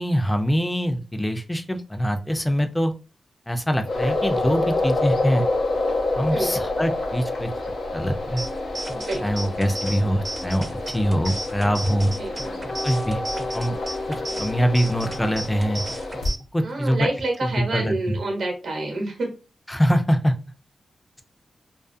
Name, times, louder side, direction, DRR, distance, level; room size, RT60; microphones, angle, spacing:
voice 1, 0.0-2.9 3.5-5.4 6.2-7.5 7.9-8.4 9.2-12.1 12.8-13.2 13.5-13.8 14.4-15.8 16.5-17.1 17.4-18.2 19.7-20.3, equal, 15° left, 6 dB, 0.5 m, -23 dB
sound 1, 3.8-16.3, left 2 dB, 80° left, 0.6 m, -28 dB
voice 2, 6.3-6.6 8.9-9.5 12.1-12.6 14.3-14.4 16.6-19.3, right 2 dB, 75° right, 2 dB, 0.8 m, -29 dB
sound 2, 8.4-16.4, right 1 dB, 35° right, 0.6 m, -35 dB
2.4 x 2.4 x 2.5 m, 0.33 s
cardioid pair, 50°, 0 cm